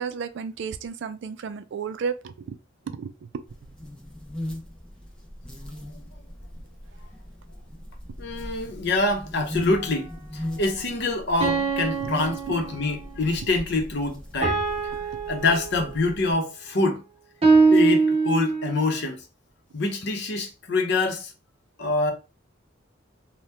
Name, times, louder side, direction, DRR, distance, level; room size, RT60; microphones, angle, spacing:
voice 1, 0.0-2.6 2.9-3.4 9.6-9.7 12.0-12.1 12.5-12.6, right 6 dB, 60° right, 0.3 m, -33 dB
sound 1, 3.5-16.3, left 1 dB, 5° left, 0.8 m, -39 dB
voice 2, 8.2-14.6 15.3-17.0 17.7-19.2 19.7-21.3 21.8-22.1, left 3 dB, 60° left, 0.7 m, -25 dB
sound 2, 9.8-9.9 11.4-13.1 14.4-16.1 17.4-18.9, right 4 dB, 30° right, 0.7 m, -23 dB
2.8 x 2.1 x 3.4 m
head